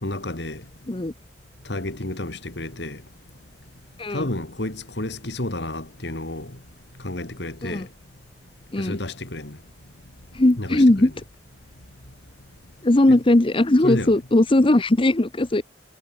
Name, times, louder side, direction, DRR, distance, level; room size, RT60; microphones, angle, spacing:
voice 1, 0.0-0.6 1.7-3.0 4.1-6.5 7.0-7.8 8.8-9.6 10.6-10.9 13.1-13.2 13.8-14.2, left 1 dB, 65° left, 2.6 m, -30 dB
voice 2, 10.3-11.1 12.8-15.6, left 1 dB, 30° left, 0.8 m, -18 dB
head